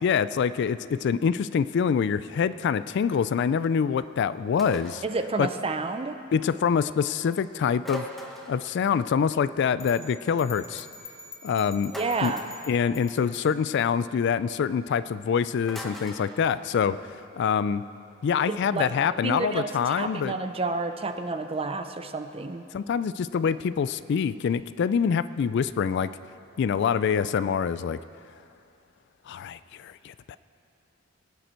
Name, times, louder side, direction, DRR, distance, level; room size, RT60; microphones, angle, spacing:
voice 1, 0.0-5.0 5.4-5.5 6.3-8.1 8.5-10.9 11.4-11.9 12.2-12.3 12.7-17.0 17.3-17.9 18.2-20.4 22.7-26.1 26.6-28.0 29.3-30.4, left 7 dB, 60° left, 15 dB, 0.3 m, -25 dB
sound 1, 4.6-5.1 7.8-8.6 11.9-12.6 15.7-16.2, equal, ahead, 1.1 m, -39 dB
voice 2, 5.0-6.1 11.9-12.5 18.5-18.9 19.2-22.6, right 3 dB, 30° right, 8 dB, 0.6 m, -30 dB
sound 2, 9.8-13.5, left 3 dB, 20° left, 1.3 m, -45 dB
21.0 x 9.3 x 4.4 m, 2.7 s
head